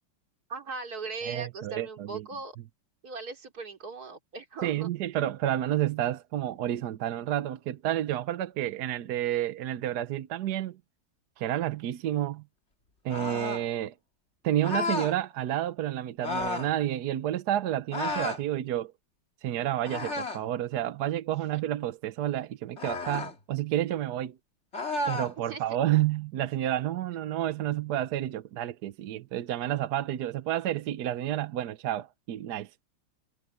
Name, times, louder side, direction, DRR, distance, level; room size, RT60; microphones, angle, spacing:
voice 1, 0.5-2.6 3.0-4.9 21.3-21.6 25.5-25.6, right 4 dB, 45° right, 3.8 m, -39 dB
voice 2, 1.2-2.2 4.6-10.8 11.4-12.4 13.0-13.9 14.4-18.9 19.4-24.4 25.1-32.7, right 12 dB, 65° right, 1.1 m, -30 dB
sound 1, 13.1-13.7 14.6-15.2 16.2-16.7 17.9-18.4 19.8-20.5 22.8-23.3 24.7-25.3, left 2 dB, 30° left, 2.4 m, -32 dB
omnidirectional pair, 2.3 m